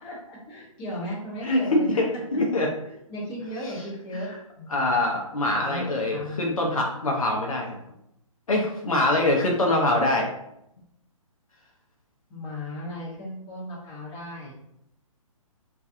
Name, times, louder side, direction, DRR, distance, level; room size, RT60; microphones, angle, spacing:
voice 1, 0.0-2.0 3.1-4.3 4.6-5.0 5.5-6.4 12.3-14.5, left 1 dB, 25° left, -5 dB, 0.9 m, -36 dB
voice 2, 1.4-2.7 3.6-3.8 4.1-4.4 4.7-7.8 8.5-10.3, left 1 dB, 75° left, 0 dB, 0.6 m, -24 dB
2.4 x 2.3 x 2.6 m, 0.79 s
figure-of-eight pair, 130°, 18 cm